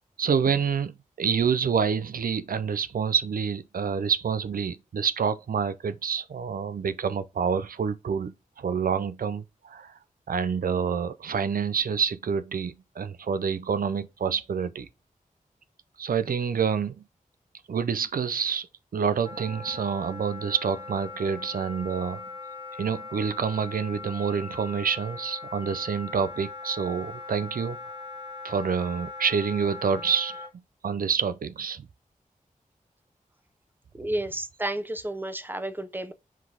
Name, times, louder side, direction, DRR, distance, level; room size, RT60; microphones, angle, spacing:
voice 1, 0.2-9.9 10.3-14.9 16.0-16.9 17.7-18.7 18.9-22.2 22.8-28.0 28.4-30.5 30.8-31.9, right 6 dB, 85° right, 0.5 m, -27 dB
Wind instrument woodwind instrument, 19.2-30.5, left 4 dB, 35° right, 1.9 m, -40 dB
voice 2, 34.0-36.1, right 1 dB, 15° right, 0.9 m, -31 dB
7.3 x 4.0 x 3.5 m
wide cardioid pair, 100°, 14 cm